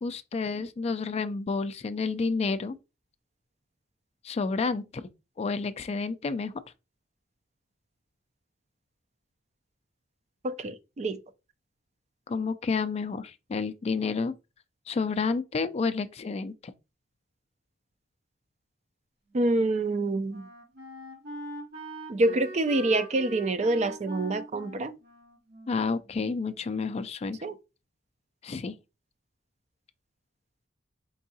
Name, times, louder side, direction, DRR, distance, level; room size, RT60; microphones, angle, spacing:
voice 1, 0.0-2.8 4.2-4.9 5.4-6.5 12.3-14.3 14.9-16.5 25.7-27.4 28.4-28.8, left 4 dB, 35° left, 0.3 m, -30 dB
voice 2, 10.4-11.2 19.3-20.5 22.1-24.9 27.4-27.6, right 2 dB, 35° right, 0.4 m, -26 dB
Wind instrument woodwind instrument, 19.8-26.6, right 2 dB, 60° right, 2.1 m, -43 dB
4.6 x 3.5 x 2.7 m
head